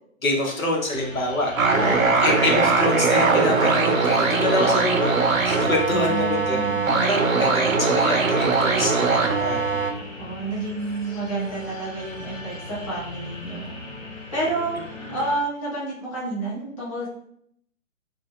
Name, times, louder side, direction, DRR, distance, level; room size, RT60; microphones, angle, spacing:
voice 1, 0.2-5.1 5.4-6.7 7.0-9.8, left 1 dB, 80° left, 0 dB, 0.8 m, -26 dB
sound 1, 0.9-15.3, left 2 dB, 50° left, 1.2 m, -39 dB
sound 2, 1.6-9.9, right 4 dB, 80° right, 0.5 m, -21 dB
voice 2, 1.7-2.3 5.9-7.4 10.2-13.6 14.3-14.7 15.1-17.1, right 2 dB, 25° left, -7 dB, 0.7 m, -30 dB
2.2 x 2.0 x 3.3 m, 0.69 s
figure-of-eight pair, 130°, 41 cm